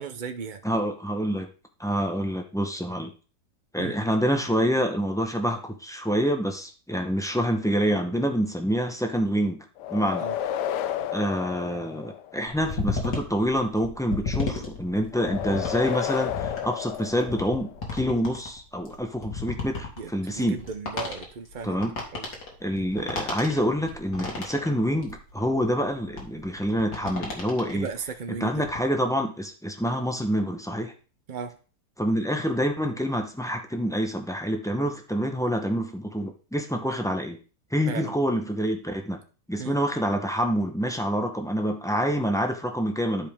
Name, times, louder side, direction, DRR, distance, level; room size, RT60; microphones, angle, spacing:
voice 1, 0.0-0.6 3.8-4.0 10.2-10.4 20.0-21.8 22.1-22.3 22.7-22.9 27.7-28.6 31.3-31.6 37.9-38.2 39.6-39.8, right 5 dB, 85° right, 8 dB, 0.4 m, -36 dB
voice 2, 0.6-1.5 1.8-3.1 3.7-9.6 9.9-10.3 11.1-20.6 21.6-21.9 22.6-27.9 28.4-30.9 32.0-37.4 37.7-39.2 39.5-43.3, equal, 5° left, 3 dB, 0.3 m, -27 dB
sound 1, 9.8-12.5 15.1-17.8, left 11 dB, 90° left, 1.2 m, -31 dB
sound 2, 12.5-27.9 28.3-28.8, left 4 dB, 75° left, 2.5 m, -34 dB
12.0 x 5.0 x 3.5 m, 0.36 s
omnidirectional pair, 1.8 m